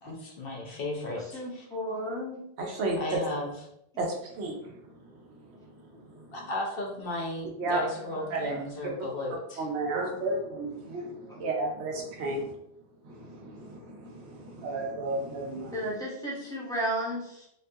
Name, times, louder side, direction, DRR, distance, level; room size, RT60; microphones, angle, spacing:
voice 1, 0.0-1.6 3.0-3.7 6.3-9.7 16.4-16.5, left 1 dB, 65° left, -1 dB, 0.8 m, -35 dB
voice 2, 1.2-2.4 7.9-8.6 15.7-17.5, right 1 dB, 5° left, -7 dB, 0.8 m, -34 dB
voice 3, 2.6-3.0 4.0-4.1 4.4-4.6 7.6-7.8 8.3-8.6 9.6-11.1 11.4-12.4 13.1-15.8, right 2 dB, 80° right, 1 dB, 0.9 m, -32 dB
2.5 x 2.3 x 2.6 m, 0.77 s
omnidirectional pair, 1.1 m